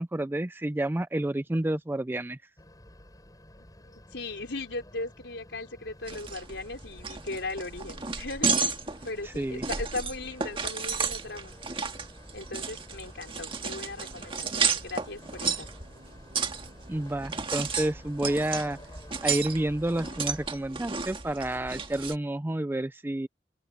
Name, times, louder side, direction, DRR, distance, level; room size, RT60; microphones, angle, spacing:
voice 1, 0.0-2.4 9.2-9.6 16.9-18.8 19.2-23.3, right 1 dB, 10° right, 0.4 m, -30 dB
sound 1, 2.6-20.5, left 1 dB, 20° left, 5.7 m, -51 dB
voice 2, 3.6-8.7 9.0-11.5 12.3-15.7, left 2 dB, 85° left, 4.4 m, -38 dB
sound 2, 6.1-22.2, right 5 dB, 30° right, 1.8 m, -33 dB
sound 3, 13.2-18.9, right 1 dB, 60° right, 5.3 m, -57 dB
open air
head